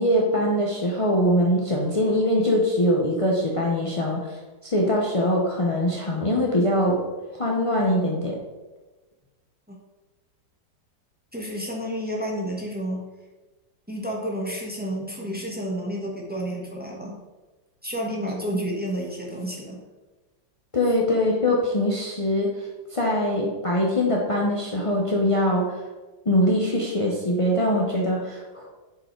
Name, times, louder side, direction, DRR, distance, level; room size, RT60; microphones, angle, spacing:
voice 1, 0.0-4.4 4.6-7.0 7.3-8.4 20.7-25.7 26.3-28.7, left 1 dB, 45° left, -3 dB, 0.4 m, -23 dB
voice 2, 11.3-13.0 13.9-17.2 17.8-19.8, equal, 5° right, -2 dB, 0.9 m, -30 dB
6.8 x 5.0 x 4.5 m, 1.2 s
omnidirectional pair, 2.0 m